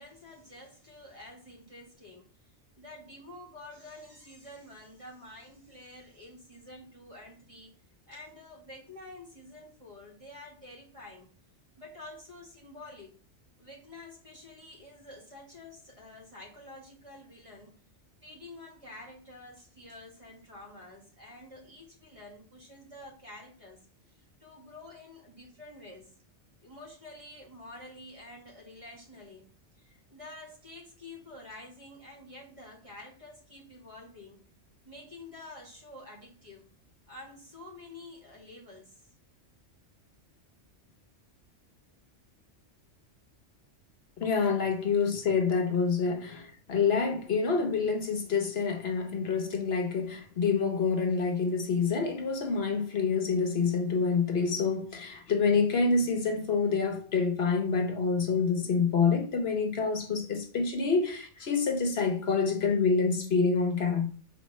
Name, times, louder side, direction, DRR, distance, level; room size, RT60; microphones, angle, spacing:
voice 1, 0.0-2.5 2.8-7.7 8.1-11.3 11.8-13.2 13.6-17.8 18.2-26.2 26.6-29.5 29.7-34.4 34.8-36.7 37.1-39.1, left 2 dB, 30° right, 1.9 m, -49 dB
voice 2, 44.2-64.1, left 5 dB, 60° left, 1.0 m, -27 dB
7.0 x 4.4 x 3.1 m
omnidirectional pair, 1.2 m